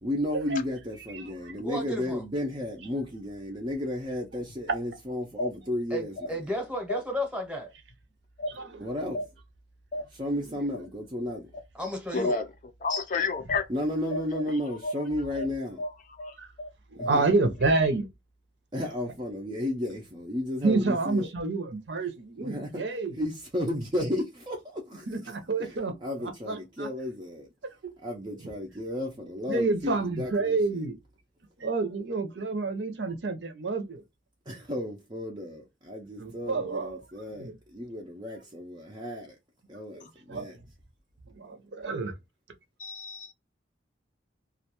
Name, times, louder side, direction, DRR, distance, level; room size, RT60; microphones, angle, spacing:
voice 1, 0.0-6.4 8.8-9.2 10.1-11.5 13.7-15.8 17.0-17.3 18.7-21.3 22.4-22.8 23.2-25.1 25.6-27.5 28.0-30.8 34.5-39.4 39.7-40.6, left 1 dB, 25° right, 0.4 m, -33 dB
voice 2, 1.6-2.2 5.9-7.7 11.7-12.3, equal, 5° right, 0.8 m, -33 dB
voice 3, 12.1-12.5 12.8-13.6 14.1-14.4 14.8-14.9 15.4-15.5 15.8-15.9 16.2-16.7 17.0-17.1 40.0-40.1 42.8-43.3, left 3 dB, 40° left, 0.4 m, -30 dB
voice 4, 16.9-18.1 20.6-23.2 25.1-25.9 26.5-26.9 27.8-27.9 29.5-31.0 31.6-34.0 36.2-37.0 37.4-37.5 40.3-40.5 41.3-42.1, right 3 dB, 65° right, 0.6 m, -28 dB
2.4 x 2.2 x 2.8 m
head